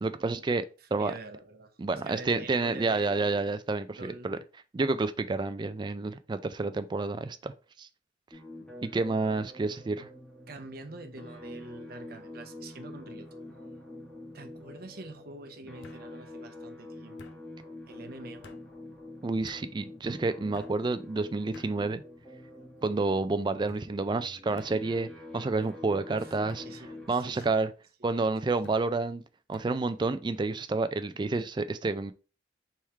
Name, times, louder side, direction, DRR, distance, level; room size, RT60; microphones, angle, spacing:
voice 1, 0.0-0.7 0.9-1.1 1.8-4.4 4.7-7.5 7.8-7.9 8.8-10.1 19.2-22.0 22.8-25.1 25.3-26.7 27.1-27.7 28.0-29.2 29.5-32.1, right 3 dB, 25° right, 0.3 m, -29 dB
voice 2, 0.8-1.7 2.0-3.6 4.0-4.3 10.5-13.3 14.3-17.4 17.9-18.6 26.1-26.4 26.6-27.7 28.0-28.1, right 2 dB, 55° right, 0.7 m, -46 dB
sound 1, 8.3-27.1, left 1 dB, 5° left, 1.0 m, -46 dB
sound 2, 12.4-12.8 13.1-13.7 14.8-14.9 15.8-16.0 17.2-17.4 18.4-18.6 19.5-19.7 20.5-20.8 21.5-21.7 22.5-22.9 23.7-23.9 24.6-24.7 25.6-25.8 26.5-26.7 27.4-27.6 28.6-28.8 29.5-29.7, left 3 dB, 75° left, 0.6 m, -52 dB
3.5 x 3.1 x 4.3 m
head